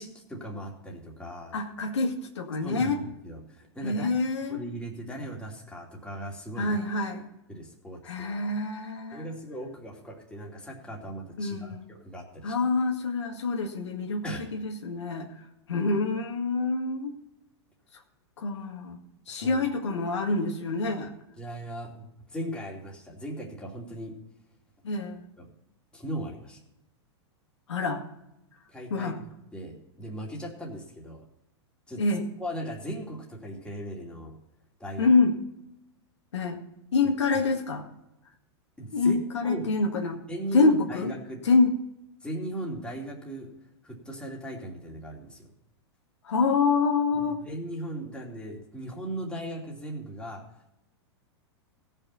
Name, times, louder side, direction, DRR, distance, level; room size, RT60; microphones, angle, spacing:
voice 1, 0.0-1.5 2.6-4.1 4.5-6.7 7.5-8.3 9.1-12.6 14.2-14.5 19.3-19.7 21.4-24.2 25.4-25.5 25.9-26.6 28.7-29.1 29.5-31.2 31.9-32.0 32.4-34.4 34.8-35.1 38.8-39.7 40.3-41.4 42.2-43.5 43.8-45.5 47.1-50.4, right 1 dB, 5° left, -2 dB, 2.7 m, -38 dB
voice 2, 1.5-3.0 3.8-4.6 6.6-7.3 8.0-9.3 11.4-11.9 12.4-14.2 14.5-15.3 15.7-17.1 18.4-19.0 19.3-21.1 24.8-25.2 27.7-28.0 28.9-29.2 32.0-32.2 35.0-35.4 36.3-36.6 36.9-37.9 38.9-40.2 40.5-41.1 41.4-41.8 46.2-47.4, left 3 dB, 85° left, 1 dB, 2.2 m, -26 dB
17.0 x 5.7 x 5.7 m, 0.87 s
hypercardioid pair, 115°, 14 cm